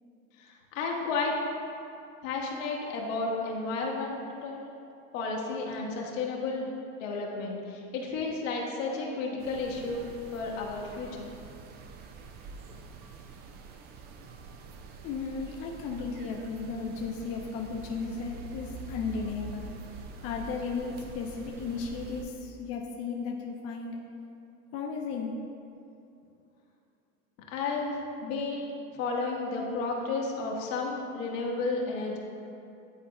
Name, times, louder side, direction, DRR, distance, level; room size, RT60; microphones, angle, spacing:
voice 1, 0.4-1.4 2.2-4.7 5.1-6.7 7.0-10.1 10.3-11.3 27.5-27.9 28.2-28.7 29.0-32.2, left 3 dB, 65° left, -1 dB, 1.3 m, -32 dB
sound 1, 9.4-22.2, right 3 dB, 25° right, 0.3 m, -45 dB
voice 2, 15.0-19.7 20.2-24.0 24.7-25.3, left 5 dB, 35° left, -1 dB, 0.6 m, -35 dB
10.0 x 4.1 x 2.3 m, 2.7 s
hypercardioid pair, 105°, 42 cm